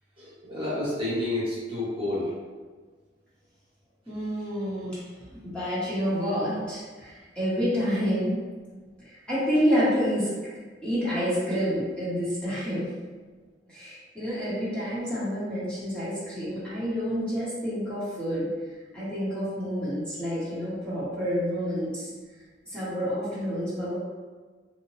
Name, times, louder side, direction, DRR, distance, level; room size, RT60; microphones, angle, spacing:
voice 1, 0.2-2.3, left 1 dB, 30° right, -9 dB, 1.0 m, -29 dB
voice 2, 4.1-5.0 5.4-8.4 9.0-10.3 10.8-12.9 13.7-18.5 18.9-22.1 22.7-24.0, equal, 5° left, -12 dB, 0.9 m, -28 dB
2.8 x 2.1 x 3.0 m, 1.4 s
head